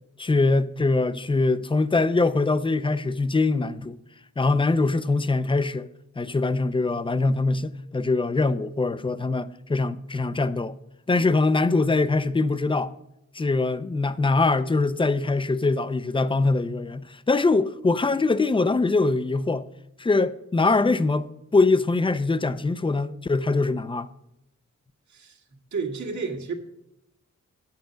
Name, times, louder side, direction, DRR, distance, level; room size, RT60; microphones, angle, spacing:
voice 1, 0.2-4.0 4.4-5.9 6.2-10.7 11.1-12.9 13.3-19.7 20.0-24.1, left 3 dB, 20° left, 0.4 m, -23 dB
voice 2, 25.1-25.4 25.7-26.6, right 4 dB, 80° right, 1.7 m, -31 dB
9.2 x 8.1 x 5.0 m
wide cardioid pair, 165°, 29 cm